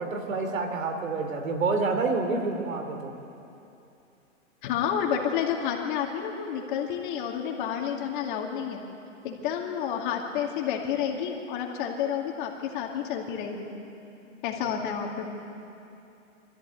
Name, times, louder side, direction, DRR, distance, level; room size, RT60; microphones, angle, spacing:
voice 1, 0.0-3.1 14.6-14.8, right 3 dB, 85° right, 5 dB, 3.1 m, -28 dB
voice 2, 4.6-8.8 9.2-13.7 14.4-15.3, left 8 dB, 40° left, 1 dB, 2.3 m, -30 dB
24.5 x 14.0 x 8.3 m, 2.8 s
hypercardioid pair, 155°, 39 cm